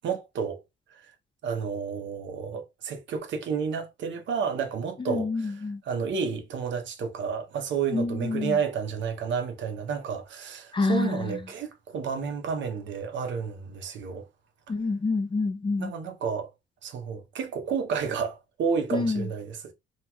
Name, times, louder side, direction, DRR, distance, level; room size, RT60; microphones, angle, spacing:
voice 1, 0.0-0.6 0.9-1.1 1.4-14.3 15.8-16.5 16.8-19.7, right 6 dB, 70° right, 0.7 m, -31 dB
voice 2, 5.1-5.8 7.9-8.6 10.7-11.4 14.7-15.9 18.9-19.3, left 3 dB, 25° left, 0.5 m, -27 dB
2.9 x 2.8 x 2.2 m
cardioid pair, 90°, 20 cm